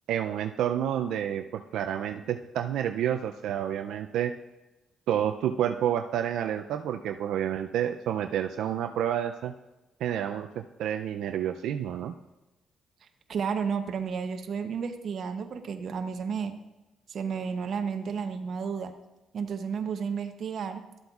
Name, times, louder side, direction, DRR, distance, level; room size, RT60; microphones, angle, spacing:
voice 1, 0.1-4.3 5.1-9.5 10.0-12.1, right 10 dB, 80° right, 6 dB, 0.3 m, -29 dB
voice 2, 13.3-16.5 17.1-18.9 19.3-20.8, right 6 dB, 60° right, 7 dB, 0.7 m, -32 dB
12.0 x 7.8 x 2.4 m, 1.0 s
cardioid pair, 90°, 0 cm